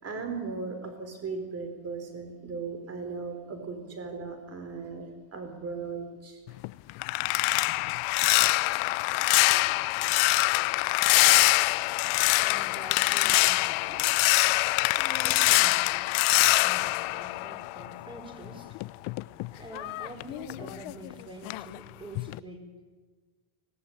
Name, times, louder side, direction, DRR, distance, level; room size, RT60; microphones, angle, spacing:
voice 1, 0.0-5.0 5.3-6.4, right 4 dB, 30° right, 6 dB, 4.5 m, -37 dB
sound 1, 6.5-18.1 18.5-21.1 21.5-21.8 22.2-22.4, left 22 dB, 80° left, 0.8 m, -24 dB
voice 2, 12.4-14.1 14.8-16.1 16.6-18.8 19.5-22.7, equal, 10° right, 2 dB, 5.0 m, -46 dB
24.5 x 19.5 x 9.0 m, 1.4 s
cardioid pair, 160°, 48 cm